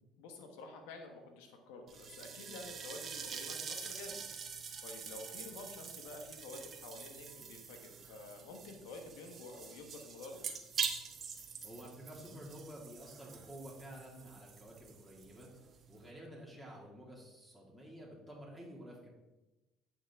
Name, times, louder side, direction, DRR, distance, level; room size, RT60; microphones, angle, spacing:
voice 1, 0.2-4.2 4.8-10.4, left 3 dB, 85° left, 4 dB, 1.3 m, -49 dB
sound 1, 1.9-16.1, right 6 dB, 45° right, 1.2 m, -45 dB
voice 2, 11.6-15.5 15.9-19.1, equal, ahead, -3 dB, 2.5 m, -51 dB
9.0 x 6.3 x 3.7 m, 1.0 s
supercardioid pair, 90°, 0 cm